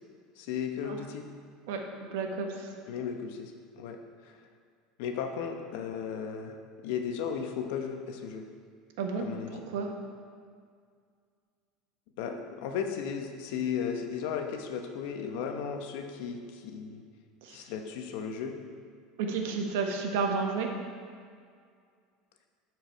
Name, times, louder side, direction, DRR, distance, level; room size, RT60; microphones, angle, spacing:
voice 1, 0.4-1.3 2.9-4.4 5.0-6.6 6.8-8.5 9.2-9.6 12.2-17.0 17.5-18.6, left 7 dB, 70° left, 5 dB, 0.9 m, -35 dB
voice 2, 2.1-2.7 9.0-9.3 9.5-9.9 17.4-17.6 19.2-20.7, right 5 dB, 80° right, 3 dB, 1.2 m, -31 dB
12.0 x 4.7 x 4.6 m, 2.1 s
cardioid pair, 150°, 0 cm